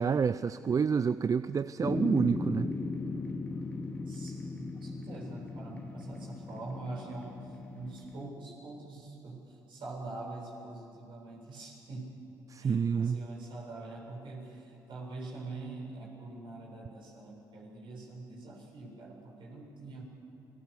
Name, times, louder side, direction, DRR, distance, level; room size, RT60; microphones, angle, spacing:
voice 1, 0.0-2.7 12.5-13.2, right 6 dB, 35° right, 15 dB, 0.5 m, -28 dB
sound 1, 1.8-8.3, left 3 dB, 15° left, 2.6 m, -37 dB
voice 2, 4.1-12.2 12.6-20.0, right 2 dB, 55° right, -2 dB, 7.9 m, -44 dB
28.5 x 21.5 x 7.0 m, 2.8 s
hypercardioid pair, 50°, 10 cm